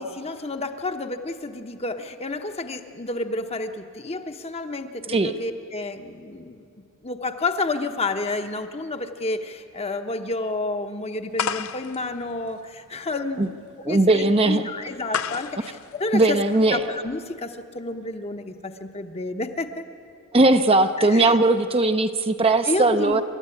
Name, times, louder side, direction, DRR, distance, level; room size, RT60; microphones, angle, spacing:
voice 1, 0.0-6.7 7.0-16.4 16.7-19.9 21.0-21.4 22.6-23.2, left 2 dB, 25° left, 7 dB, 1.0 m, -30 dB
sound 1, 11.4-17.0, left 7 dB, 70° left, 0.6 m, -33 dB
voice 2, 13.9-14.6 16.1-16.8 20.3-23.2, right 2 dB, 25° right, 7 dB, 0.7 m, -19 dB
27.5 x 13.0 x 9.8 m, 2.4 s
head